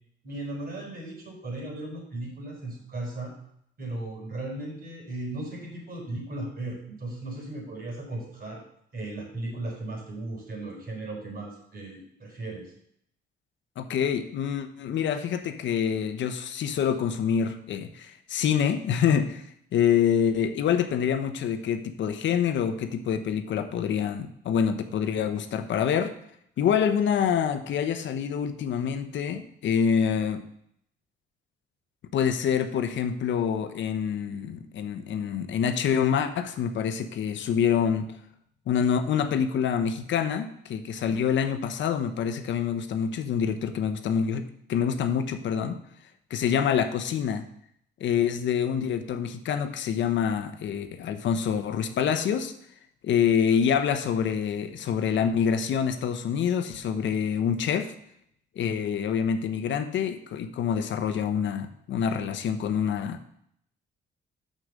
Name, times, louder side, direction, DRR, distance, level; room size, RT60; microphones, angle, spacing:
voice 1, 0.2-3.3 3.8-8.6 8.9-12.7, right 2 dB, 50° right, -1 dB, 4.1 m, -36 dB
voice 2, 13.8-19.4 19.7-26.1 26.6-30.4 32.1-38.0 38.7-45.8 46.3-47.4 48.0-52.5 53.0-57.9 58.6-63.3, left 7 dB, 70° left, 9 dB, 0.9 m, -26 dB
6.6 x 6.2 x 6.6 m, 0.70 s
cardioid pair, 90°, 20 cm